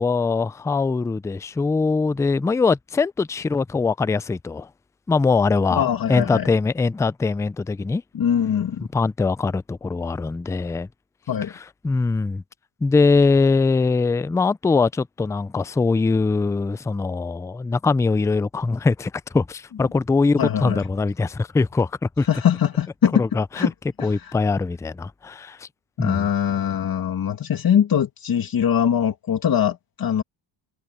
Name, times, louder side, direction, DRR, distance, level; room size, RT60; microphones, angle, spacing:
voice 1, 0.0-4.7 5.1-8.0 8.8-10.9 11.8-12.4 12.8-22.3 23.2-23.7 24.0-25.7 26.0-26.3, left 4 dB, 5° left, 0.3 m, -22 dB
voice 2, 5.8-6.5 8.1-8.8 11.3-11.5 20.4-20.8 22.2-23.2 23.5-23.7 24.0-24.3 26.0-30.2, left 9 dB, 45° left, 2.1 m, -22 dB
cardioid pair, 95°, 48 cm